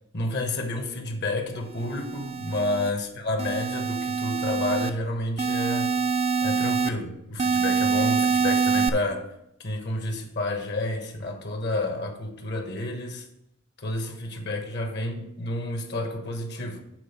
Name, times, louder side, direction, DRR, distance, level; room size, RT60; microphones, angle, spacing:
voice 1, 0.1-5.9 6.4-9.3 9.6-13.3 13.8-16.8, left 2 dB, 55° left, 1.3 m, -30 dB
sound 1, 1.8-2.9 3.4-4.9 5.4-6.9 7.4-8.9, right 5 dB, 30° right, 0.4 m, -25 dB
7.8 x 4.1 x 6.7 m
head